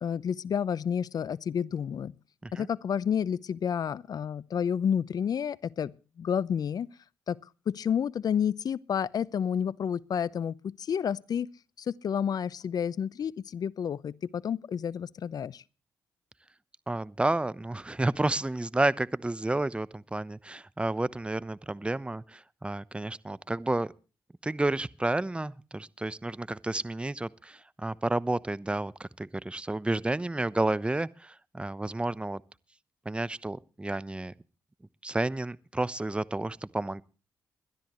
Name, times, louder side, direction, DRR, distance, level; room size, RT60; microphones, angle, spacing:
voice 1, 0.0-2.1 2.5-5.9 6.2-6.9 7.3-7.4 7.7-11.5 11.8-15.6, left 8 dB, 60° left, 0.7 m, -30 dB
voice 2, 16.9-23.9 24.4-32.4 33.0-34.3 35.0-37.0, right 2 dB, 15° right, 0.9 m, -31 dB
21.5 x 12.5 x 3.1 m
supercardioid pair, 50°, 7 cm